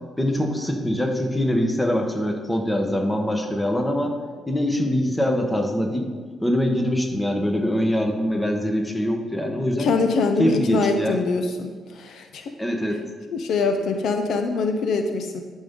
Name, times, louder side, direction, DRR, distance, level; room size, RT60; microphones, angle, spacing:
voice 1, 0.2-4.1 4.5-6.0 6.4-9.9 10.4-11.2 12.6-13.0, equal, 10° left, 3 dB, 1.1 m, -23 dB
voice 2, 9.8-12.5 13.3-15.4, left 4 dB, 70° left, 5 dB, 0.7 m, -24 dB
12.0 x 5.4 x 3.7 m, 1.5 s
cardioid pair, 90°, 0 cm